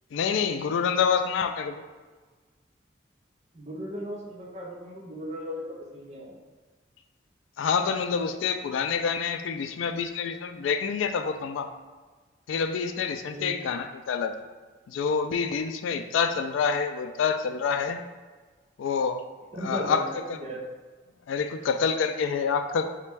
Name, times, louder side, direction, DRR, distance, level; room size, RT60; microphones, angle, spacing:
voice 1, 0.1-1.8 7.6-11.7 12.5-14.3 14.9-18.0 18.8-19.2 19.6-20.0 21.3-22.9, left 6 dB, 90° left, 8 dB, 0.3 m, -27 dB
voice 2, 3.5-6.4 13.3-13.6 19.5-20.6, equal, 35° right, -2 dB, 0.5 m, -36 dB
4.1 x 2.2 x 4.5 m, 1.4 s
head